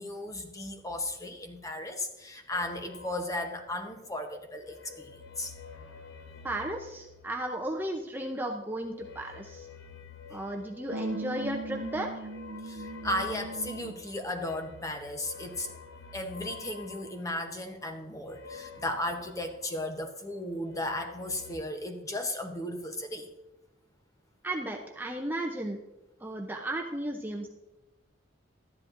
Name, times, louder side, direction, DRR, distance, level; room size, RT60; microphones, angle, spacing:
voice 1, 0.0-5.5 10.3-10.4 12.6-15.7 16.1-23.3, left 1 dB, 15° left, 5 dB, 0.8 m, -35 dB
sound 1, 2.5-4.1 4.5-8.0 8.8-20.2 20.5-21.6, left 5 dB, 70° left, 1.0 m, -48 dB
voice 2, 6.4-9.7 10.3-12.3 24.4-25.8 26.2-27.5, right 1 dB, 10° right, 0 dB, 0.6 m, -34 dB
sound 2, 10.9-14.1, right 2 dB, 75° right, 0.6 m, -39 dB
13.0 x 10.5 x 2.5 m, 0.98 s
head